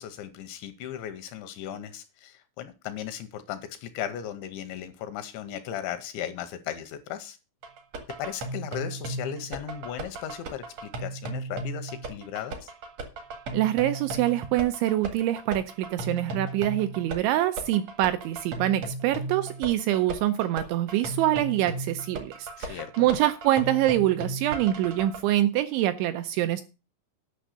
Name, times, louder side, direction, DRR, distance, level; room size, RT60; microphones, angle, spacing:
voice 1, 0.0-7.4 8.2-12.7 22.6-23.1, left 10 dB, 80° left, 10 dB, 2.9 m, -36 dB
sound 1, 7.6-25.2, right 2 dB, 65° right, 1.6 m, -36 dB
voice 2, 13.5-26.6, right 13 dB, 80° right, 10 dB, 2.7 m, -25 dB
10.0 x 6.1 x 6.5 m, 0.31 s
omnidirectional pair, 5.8 m